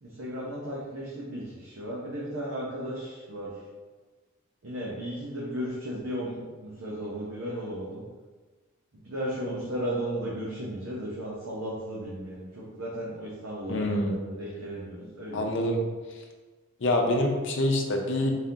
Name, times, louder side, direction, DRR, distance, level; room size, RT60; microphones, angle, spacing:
voice 1, 0.0-3.6 4.6-8.0 8.9-14.0 14.3-15.5, right 1 dB, 70° right, -6 dB, 0.8 m, -35 dB
voice 2, 13.7-14.1 15.3-15.8 16.8-18.3, left 1 dB, 60° left, 1 dB, 0.6 m, -26 dB
4.0 x 2.8 x 3.7 m, 1.3 s
head